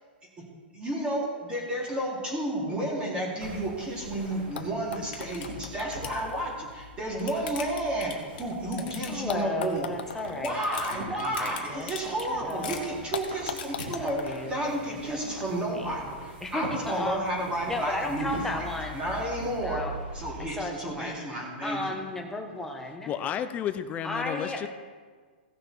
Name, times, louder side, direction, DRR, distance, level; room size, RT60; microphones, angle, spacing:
voice 1, 0.7-10.0 10.3-19.8 20.1-22.0, right 1 dB, 15° right, -3 dB, 3.4 m, -31 dB
sound 1, 3.4-20.5, equal, 80° right, 4.0 m, -44 dB
sound 2, 4.5-4.6 5.0-5.5 5.7-6.2 6.8-9.4 9.6-10.0 10.3-13.9, left 8 dB, 55° left, 1.8 m, -40 dB
sound 3, 4.6-8.6 9.3-12.2 12.5-12.6 13.1-15.5 16.5-16.6, left 6 dB, 80° left, 1.0 m, -42 dB
voice 2, 9.0-13.1 13.9-14.8 15.1-16.1 16.4-17.2 17.7-19.0 19.6-19.9 20.5-21.1 21.6-23.1 24.0-24.7, left 2 dB, 5° left, 1 dB, 1.5 m, -35 dB
voice 3, 23.1-24.7, left 9 dB, 25° left, 11 dB, 0.6 m, -32 dB
16.5 x 6.5 x 4.6 m, 1.5 s
hypercardioid pair, 135°, 6 cm